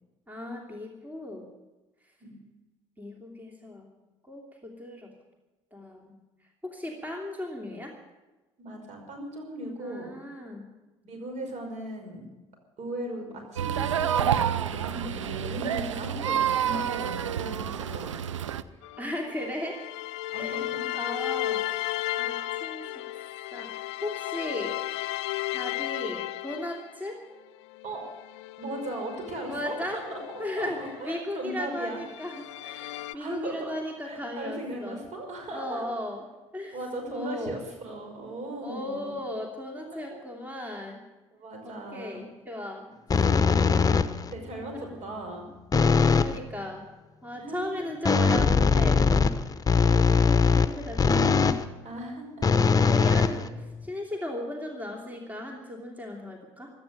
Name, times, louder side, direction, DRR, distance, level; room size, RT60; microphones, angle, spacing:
voice 1, 0.3-1.4 3.0-3.9 4.3-5.1 5.7-6.2 6.6-7.9 9.8-10.7 19.0-19.8 20.3-20.6 20.9-23.1 23.5-24.8 25.5-27.2 29.5-30.0 30.4-35.0 35.5-36.2 36.5-36.8 37.1-37.6 38.6-41.0 41.6-42.9 44.7-45.0 46.1-46.8 47.2-49.1 49.8-51.4 52.9-56.7, left 1 dB, 10° right, 0 dB, 2.9 m, -36 dB
voice 2, 8.6-10.1 11.0-12.3 12.8-18.4 20.3-20.8 21.3-21.4 27.8-28.1 28.6-30.2 30.5-32.0 33.1-33.7 34.0-35.8 36.7-39.2 39.8-40.2 41.3-42.2 43.2-43.6 43.9-45.5 47.3-47.7 51.8-52.4 52.9-53.0, right 1 dB, 50° right, 3 dB, 5.4 m, -38 dB
sound 1, 13.6-18.6, right 9 dB, 90° right, 0.5 m, -28 dB
sound 2, 18.8-27.1 27.6-31.5 31.9-33.1, left 16 dB, 70° left, 0.5 m, -35 dB
sound 3, 43.1-44.3 45.7-46.4 48.0-51.6 52.4-53.9, left 5 dB, 25° left, 1.0 m, -21 dB
16.5 x 12.5 x 6.7 m, 1.1 s
hypercardioid pair, 60°, 15 cm